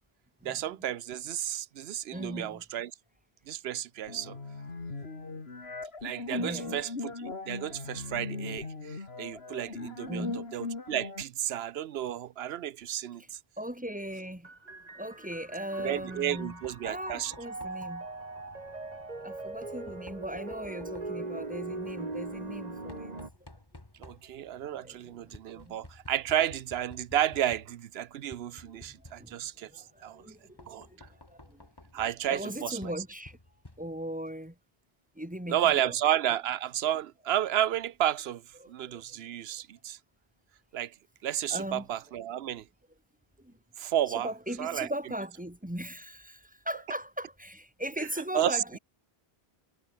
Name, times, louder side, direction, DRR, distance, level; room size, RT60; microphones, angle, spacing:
voice 1, 0.4-2.9 3.5-4.3 6.0-10.3 10.5-13.4 15.8-17.3 24.0-30.2 30.7-30.9 31.9-32.9 35.5-38.4 38.7-40.0 40.7-40.9 41.2-42.6 43.8-44.3 44.6-44.9 48.0-48.1 48.3-48.6, right 11 dB, 75° right, 0.9 m, -32 dB
voice 2, 2.1-2.6 6.4-6.8 10.1-10.5 13.2-13.3 13.6-18.1 19.2-23.1 24.1-24.2 24.8-25.8 28.6-31.7 32.3-33.4 33.8-34.6 35.2-36.0 38.6-39.2 41.5-41.9 43.4-43.5 44.1-48.8, right 1 dB, 5° right, 2.3 m, -39 dB
sound 1, 4.1-11.2, left 3 dB, 70° left, 2.8 m, -39 dB
sound 2, 14.4-23.3, right 3 dB, 40° right, 2.2 m, -41 dB
Knock, 15.8-34.2, left 2 dB, 20° left, 2.1 m, -54 dB
omnidirectional pair, 1.1 m